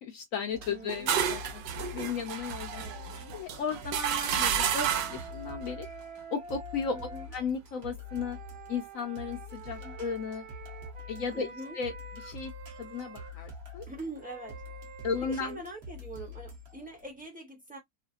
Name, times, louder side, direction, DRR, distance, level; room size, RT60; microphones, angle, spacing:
voice 1, 0.0-5.9 6.3-7.0 7.3-8.4 8.7-10.4 11.1-11.5 11.7-11.9 12.2-12.5 12.8-13.9 15.0-15.6, left 6 dB, 65° left, 0.9 m, -35 dB
sound 1, 0.5-17.0, left 2 dB, 45° right, 1.0 m, -46 dB
sound 2, 0.6-5.3, right 8 dB, 80° right, 1.2 m, -31 dB
voice 2, 0.7-1.2 2.7-3.2 6.9-7.3 9.8-10.0 11.3-11.8 13.9-14.6 15.2-17.8, right 1 dB, 5° right, 0.7 m, -43 dB
Flute - C major, 2.8-7.3 8.0-13.4 14.2-15.4, right 5 dB, 60° right, 1.4 m, -48 dB
3.1 x 2.2 x 2.5 m
omnidirectional pair, 1.9 m